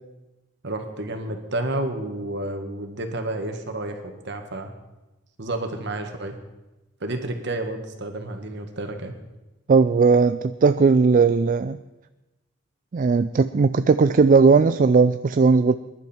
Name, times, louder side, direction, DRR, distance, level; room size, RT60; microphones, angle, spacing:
voice 1, 0.6-4.7 5.4-6.4 7.0-9.1, right 1 dB, 65° right, 5 dB, 1.8 m, -30 dB
voice 2, 9.7-11.8 12.9-15.8, right 4 dB, 45° right, 12 dB, 0.4 m, -17 dB
21.0 x 11.0 x 4.5 m, 1.1 s
head